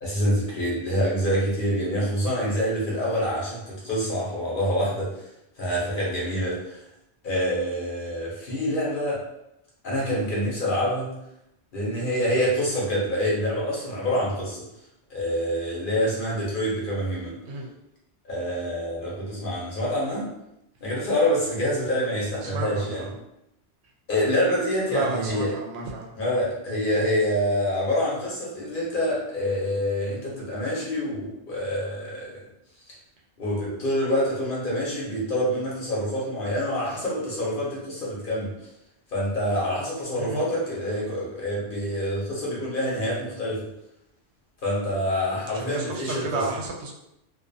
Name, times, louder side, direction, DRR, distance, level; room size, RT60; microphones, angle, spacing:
voice 1, 0.0-5.2 5.6-6.8 7.2-9.2 9.8-11.1 11.7-14.6 15.1-17.4 18.2-20.3 20.8-23.0 24.1-25.5 26.2-32.4 33.4-38.5 39.1-43.7 44.6-46.4, equal, 50° left, -5 dB, 0.9 m, -26 dB
voice 2, 22.4-23.1 24.9-26.1 40.2-40.5 45.5-46.9, right 3 dB, 70° right, -1 dB, 0.8 m, -32 dB
2.5 x 2.3 x 2.5 m, 0.84 s
omnidirectional pair, 1.2 m